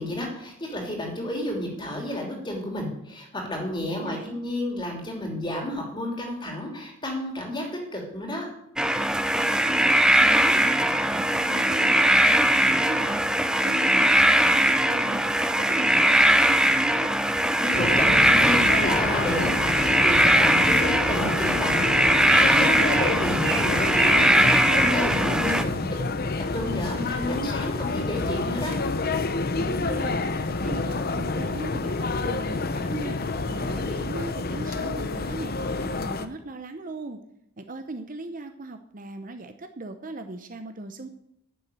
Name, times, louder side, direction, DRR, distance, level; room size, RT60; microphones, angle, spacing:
voice 1, 0.0-7.6 7.9-8.5 17.6-26.0 26.5-28.8, left 1 dB, 20° left, 1 dB, 3.0 m, -31 dB
voice 2, 3.9-4.4 9.3-13.4 13.6-15.2 15.6-17.1 25.0-25.5 25.8-26.0 29.5-32.0 32.2-33.2 33.5-35.5 35.8-37.2 37.6-41.1, right 2 dB, 35° right, 8 dB, 0.7 m, -38 dB
sound 1, 8.8-25.6, right 1 dB, 5° right, 0.5 m, -20 dB
sound 2, 17.7-36.3, left 3 dB, 45° left, 0.7 m, -28 dB
Bird, 20.7-25.9, right 5 dB, 75° right, 3.7 m, -37 dB
10.5 x 7.1 x 9.2 m, 0.79 s
head